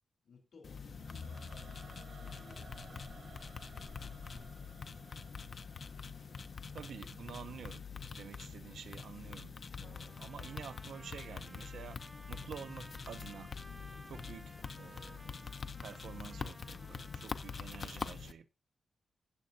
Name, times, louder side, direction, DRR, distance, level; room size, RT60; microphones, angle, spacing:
voice 1, 0.2-4.3, left 4 dB, 70° left, 3.2 m, -61 dB
sound 1, 0.6-18.3, left 5 dB, 45° left, 0.6 m, -45 dB
Singing / Musical instrument, 0.9-8.0, right 6 dB, 50° right, 0.5 m, -59 dB
voice 2, 6.7-7.8 8.2-12.0 12.3-13.5 14.1-15.5 15.8-18.5, right 7 dB, 85° right, 0.7 m, -49 dB
Trumpet, 9.8-18.1, right 1 dB, 10° right, 0.7 m, -58 dB
16.5 x 7.7 x 2.7 m
wide cardioid pair, 165°, 0 cm